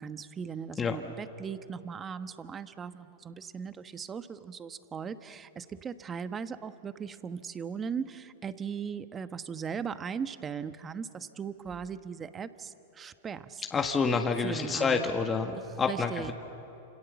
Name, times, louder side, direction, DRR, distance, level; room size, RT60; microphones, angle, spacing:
voice 1, 0.0-13.6 14.4-15.1 15.9-16.3, right 6 dB, 25° right, 11 dB, 1.2 m, -38 dB
voice 2, 13.7-16.3, left 5 dB, 20° left, 4 dB, 1.6 m, -28 dB
29.5 x 27.5 x 7.1 m, 2.9 s
hypercardioid pair, 110°, 0 cm